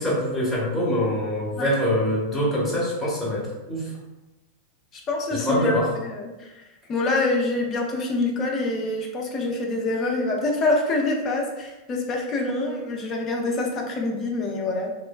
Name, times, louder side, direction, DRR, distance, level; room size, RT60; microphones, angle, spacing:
voice 1, 0.0-3.8 5.3-5.9, equal, 10° left, -7 dB, 1.0 m, -24 dB
voice 2, 4.9-5.7 6.0-6.6 6.9-14.9, left 2 dB, 30° left, 0 dB, 0.5 m, -26 dB
2.9 x 2.1 x 2.3 m, 1.0 s
figure-of-eight pair, 90°, 0 cm